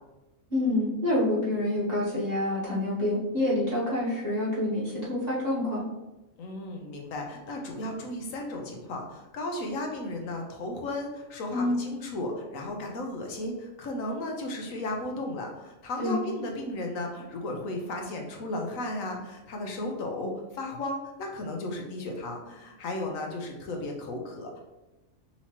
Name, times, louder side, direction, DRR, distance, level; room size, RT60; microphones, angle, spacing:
voice 1, 0.5-5.8 11.5-11.8 16.0-16.2, left 1 dB, 30° right, -8 dB, 1.5 m, -27 dB
voice 2, 6.4-24.6, left 1 dB, 80° left, 1 dB, 1.2 m, -35 dB
5.7 x 2.9 x 2.9 m, 1.0 s
omnidirectional pair, 1.4 m